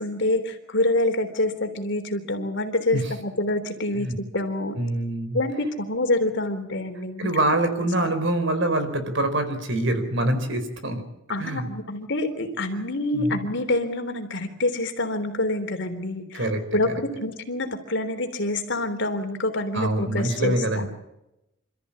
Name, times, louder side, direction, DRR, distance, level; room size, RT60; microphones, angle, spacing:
voice 1, 0.0-4.1 4.3-4.8 5.3-7.3 11.3-16.5 16.7-16.9 17.2-20.9, left 2 dB, 60° left, 6 dB, 3.5 m, -26 dB
voice 2, 4.8-5.4 7.2-11.0 11.4-11.7 13.1-13.5 16.3-16.9 19.7-20.9, right 1 dB, 60° right, 9 dB, 4.3 m, -25 dB
28.0 x 14.0 x 8.7 m, 0.89 s
head